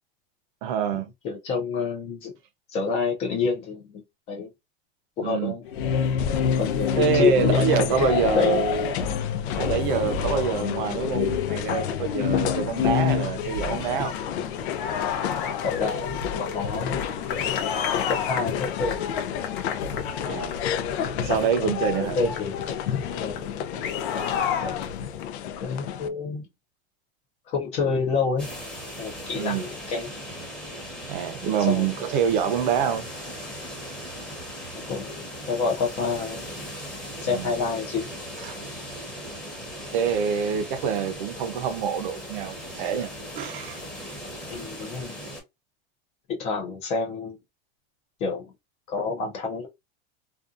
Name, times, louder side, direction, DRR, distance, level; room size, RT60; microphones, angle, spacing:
voice 1, 0.6-1.1 5.2-5.5 7.0-8.9 9.6-14.2 20.3-20.6 21.2-22.2 29.3-29.7 31.1-33.1 37.3-37.5 38.4-38.6 39.9-43.8, right 7 dB, 50° right, 0.5 m, -26 dB
voice 2, 1.2-2.3 2.7-4.0 4.3-4.5 5.2-5.6 6.5-8.6 15.6-17.0 17.3-17.5 18.1-19.1 21.3-21.4 21.9-22.6 23.2-23.4 24.6-24.8 25.6-26.5 27.5-28.5 29.0-30.1 31.4-31.9 34.7-36.4 37.2-38.1 44.5-45.2 46.3-47.4 48.2-48.5 48.9-49.7, left 5 dB, 20° left, 0.4 m, -28 dB
sound 1, 5.6-25.2, left 7 dB, 55° left, 0.7 m, -28 dB
sound 2, 6.2-26.1, left 8 dB, 90° left, 0.6 m, -33 dB
sound 3, 28.4-45.4, equal, 5° left, 0.9 m, -38 dB
2.6 x 2.3 x 2.4 m
supercardioid pair, 165°, 32 cm